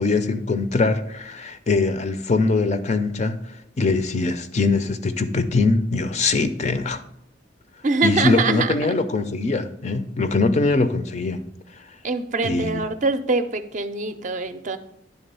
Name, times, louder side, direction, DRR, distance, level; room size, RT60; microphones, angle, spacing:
voice 1, 0.0-3.4 3.8-7.0 8.0-11.4 12.4-12.8, left 3 dB, 40° left, 0.5 m, -22 dB
voice 2, 7.8-9.0 12.0-14.8, right 3 dB, 40° right, 0.5 m, -24 dB
10.0 x 3.6 x 5.4 m
head